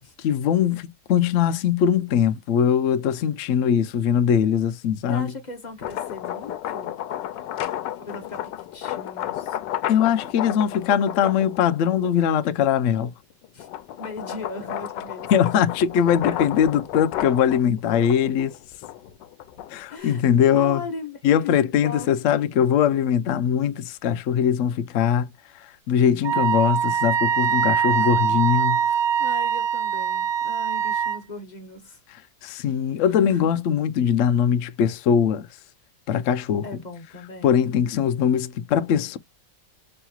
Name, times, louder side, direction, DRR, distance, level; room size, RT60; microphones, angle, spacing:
voice 1, 0.2-5.3 9.9-13.1 15.3-18.6 19.7-20.8 21.2-25.3 25.9-28.8 32.4-35.4 36.1-36.7 37.4-39.2, left 8 dB, 75° left, 0.7 m, -21 dB
voice 2, 5.1-7.0 8.0-9.6 13.5-13.7 14.0-15.3 19.9-21.2 21.4-22.1 22.4-22.6 27.6-28.1 28.8-32.0 33.0-33.5 36.6-37.6, left 3 dB, 35° left, 0.8 m, -38 dB
sound 1, 5.6-12.2 12.8-20.0, left 12 dB, 90° left, 1.3 m, -32 dB
Wind instrument woodwind instrument, 26.2-31.2, right 8 dB, 70° right, 1.0 m, -23 dB
5.6 x 2.9 x 2.2 m
omnidirectional pair, 1.9 m